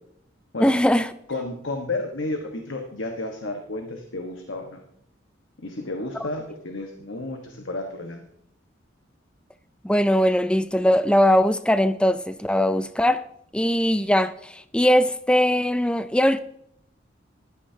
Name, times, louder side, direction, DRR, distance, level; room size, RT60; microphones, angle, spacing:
voice 1, 0.6-1.1 9.8-13.2 13.5-16.4, equal, 5° left, 0.4 m, -20 dB
voice 2, 1.3-4.8 5.6-8.2, left 2 dB, 80° left, 1.4 m, -32 dB
15.5 x 12.5 x 2.8 m
head